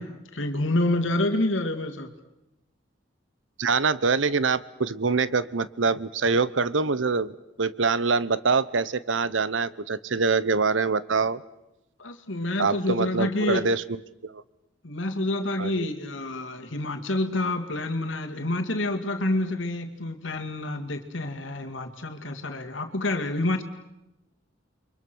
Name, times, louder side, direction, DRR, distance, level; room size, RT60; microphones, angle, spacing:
voice 1, 0.0-2.1 12.0-13.6 14.8-23.6, left 1 dB, 85° left, 5 dB, 2.2 m, -28 dB
voice 2, 3.6-11.4 12.6-14.4 15.6-15.9, right 4 dB, 80° right, 17 dB, 0.9 m, -25 dB
29.5 x 23.5 x 6.3 m, 0.92 s
head